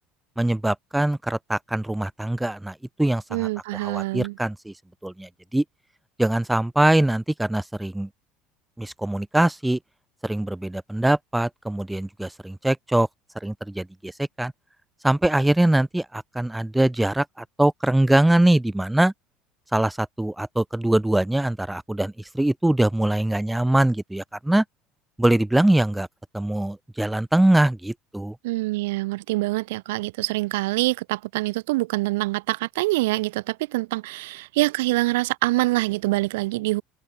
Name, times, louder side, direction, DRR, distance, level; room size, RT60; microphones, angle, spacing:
voice 1, 0.4-4.7 5.0-5.6 6.2-8.1 8.8-9.8 10.2-13.1 13.4-14.5 15.0-19.1 19.7-24.6 25.2-26.1 26.3-28.4, right 1 dB, 5° right, 4.4 m, -22 dB
voice 2, 3.3-4.4 28.4-36.8, right 20 dB, 80° right, 3.7 m, -25 dB
open air
hypercardioid pair, 80°, 0 cm